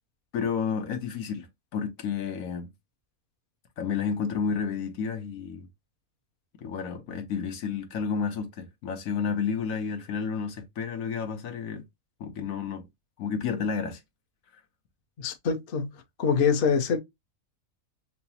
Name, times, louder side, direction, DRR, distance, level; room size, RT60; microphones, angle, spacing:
voice 1, 0.3-2.7 3.8-5.7 6.6-11.8 12.2-12.9 13.2-14.0 14.5-14.6, left 6 dB, 75° left, 1.2 m, -31 dB
voice 2, 15.2-15.9 16.2-17.0, left 6 dB, 50° left, 0.7 m, -24 dB
5.7 x 2.0 x 2.8 m
omnidirectional pair, 1.5 m